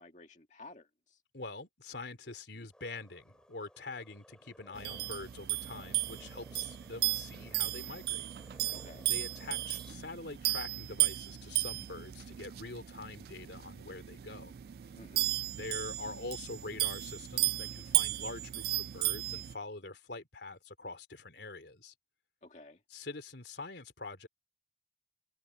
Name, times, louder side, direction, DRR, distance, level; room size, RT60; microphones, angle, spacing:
voice 1, 0.0-1.2 8.7-9.1 14.9-15.3 22.4-22.8, left 2 dB, 40° left, 2.2 m, -53 dB
voice 2, 1.3-8.6 9.1-14.5 15.4-21.9 22.9-24.3, left 3 dB, 80° left, 3.2 m, -45 dB
sound 1, 2.7-9.9, equal, 5° left, 6.0 m, -59 dB
sound 2, 4.7-19.5, right 17 dB, 60° right, 0.3 m, -35 dB
head